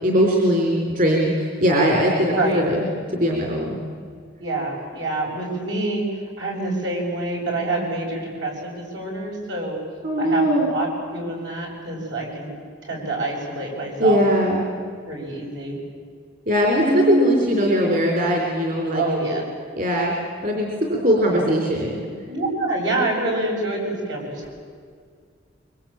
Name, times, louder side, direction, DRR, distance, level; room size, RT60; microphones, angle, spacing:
voice 1, 0.0-3.8 10.0-10.7 14.0-14.6 16.5-19.0 19.8-20.1 20.4-22.0, equal, 45° right, 0 dB, 4.2 m, -20 dB
voice 2, 2.2-2.7 4.4-6.0 6.4-9.8 10.2-12.5 12.8-14.2 15.1-15.8 16.7-17.4 18.9-19.4 21.3-21.5 22.3-24.6, right 2 dB, 75° right, -1 dB, 7.5 m, -26 dB
24.5 x 23.5 x 9.0 m, 2.1 s
head